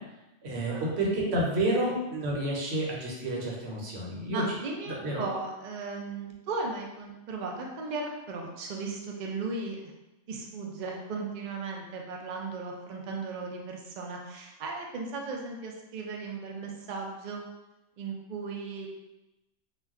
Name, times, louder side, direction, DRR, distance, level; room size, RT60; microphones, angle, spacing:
voice 1, 0.4-4.4 5.0-5.2, right 1 dB, 60° right, -3 dB, 0.9 m, -29 dB
voice 2, 4.3-9.9 10.3-17.5 18.0-18.9, right 3 dB, 85° right, 0 dB, 0.4 m, -36 dB
2.3 x 2.2 x 3.5 m, 0.98 s
omnidirectional pair, 1.3 m